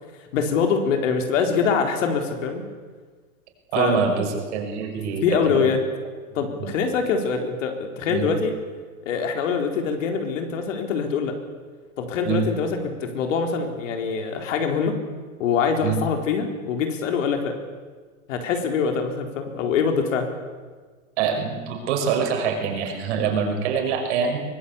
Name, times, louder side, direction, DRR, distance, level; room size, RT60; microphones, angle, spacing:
voice 1, 0.3-2.6 3.8-4.0 5.2-5.8 6.3-8.5 9.0-11.4 12.0-15.0 15.4-17.6 18.3-20.3, left 6 dB, 55° left, 4 dB, 4.3 m, -24 dB
voice 2, 3.7-5.7 6.3-6.7 8.1-8.3 12.2-12.5 15.8-16.0 21.2-24.4, right 6 dB, 50° right, 3 dB, 5.7 m, -25 dB
23.5 x 18.0 x 8.6 m, 1.5 s
hypercardioid pair, 155°, 44 cm